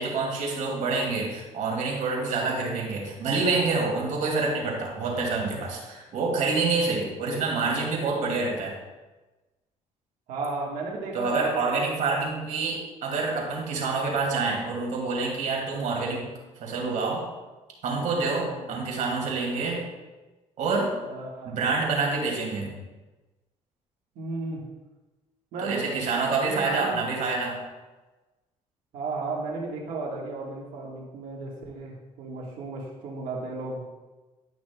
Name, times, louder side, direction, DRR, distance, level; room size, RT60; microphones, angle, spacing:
voice 1, 0.0-8.8 11.1-16.3 16.6-17.3 17.8-19.8 20.6-20.9 21.5-22.7 25.6-27.6, right 3 dB, 70° right, -1 dB, 2.2 m, -27 dB
voice 2, 2.4-2.8 7.2-7.4 10.3-12.3 18.4-18.7 21.0-21.6 24.1-24.7 25.5-25.9 26.3-27.0 28.9-34.0, right 3 dB, 85° right, -2 dB, 1.4 m, -34 dB
11.0 x 6.0 x 2.2 m, 1.2 s
cardioid pair, 90°, 13 cm